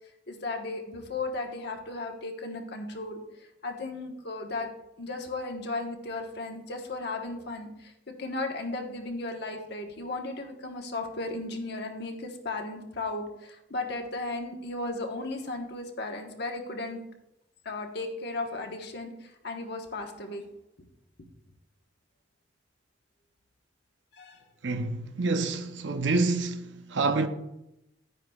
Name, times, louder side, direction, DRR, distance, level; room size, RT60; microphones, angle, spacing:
voice 1, 0.3-4.7 5.0-7.9 8.2-17.0 17.6-20.4 24.1-24.4, left 2 dB, 60° left, 1.2 m, -35 dB
voice 2, 24.6-27.3, right 3 dB, 70° right, 0.7 m, -27 dB
11.5 x 9.4 x 2.4 m
head